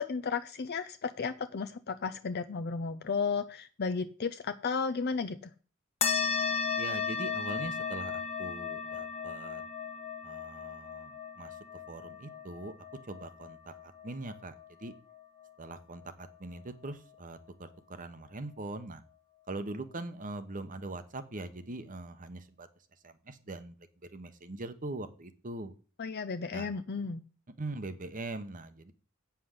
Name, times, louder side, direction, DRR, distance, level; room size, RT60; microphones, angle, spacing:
voice 1, 0.0-5.4 26.0-27.2, left 5 dB, 50° left, 8 dB, 0.6 m, -33 dB
sound 1, 6.0-14.9, left 6 dB, 30° left, 1.0 m, -35 dB
voice 2, 6.8-9.6 10.2-11.6 11.9-12.7 13.1-13.7 14.0-14.5 14.8-14.9 15.6-19.0 19.5-22.7 23.0-23.7 24.1-25.7 26.5-26.7 27.6-28.9, right 2 dB, 40° right, 11 dB, 1.0 m, -42 dB
8.6 x 5.8 x 6.5 m, 0.38 s
head